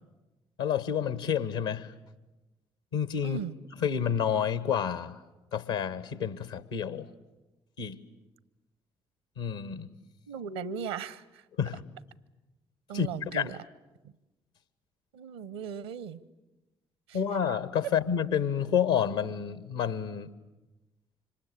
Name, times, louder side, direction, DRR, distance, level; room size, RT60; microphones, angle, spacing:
voice 1, 0.6-1.9 2.9-3.4 3.8-5.2 5.5-7.1 7.8-8.0 9.4-9.9 11.6-11.8 12.9-13.5 17.1-20.3, left 8 dB, 80° left, 15 dB, 1.3 m, -29 dB
voice 2, 3.2-3.5 10.3-11.4 12.9-13.6 15.1-16.2 17.1-17.2, right 7 dB, 75° right, 21 dB, 0.8 m, -37 dB
26.5 x 25.5 x 8.4 m, 1.1 s
figure-of-eight pair, 40°, 13 cm